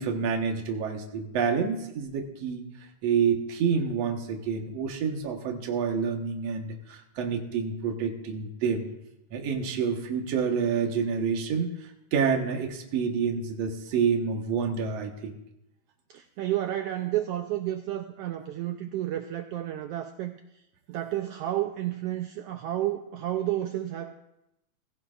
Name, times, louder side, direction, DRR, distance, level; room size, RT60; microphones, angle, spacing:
voice 1, 0.0-2.6 3.0-8.9 9.3-15.4, right 6 dB, 65° right, 3 dB, 2.4 m, -28 dB
voice 2, 16.1-20.4 20.9-24.2, right 13 dB, 85° right, 7 dB, 1.4 m, -31 dB
19.0 x 16.5 x 2.5 m, 0.86 s
omnidirectional pair, 3.4 m